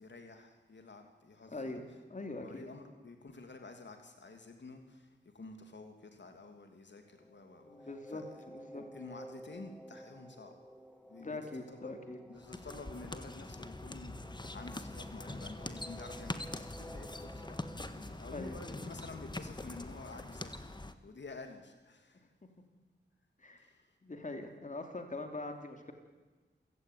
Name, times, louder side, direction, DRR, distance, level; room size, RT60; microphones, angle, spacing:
voice 1, 0.0-1.7 2.4-10.6 11.1-12.0 12.3-20.7 21.0-22.3 23.6-23.9, left 3 dB, 75° left, 5 dB, 2.8 m, -50 dB
voice 2, 1.5-1.8 2.1-2.6 7.6-8.8 11.2-12.2 18.3-18.6 23.4-23.7 24.0-25.9, left 2 dB, 40° left, 5 dB, 3.1 m, -42 dB
sound 1, 7.1-17.8, equal, ahead, 2.2 m, -53 dB
sound 2, 12.4-20.9, left 2 dB, 25° left, 1.5 m, -44 dB
28.0 x 16.5 x 9.4 m, 1.3 s
wide cardioid pair, 85°, 19 cm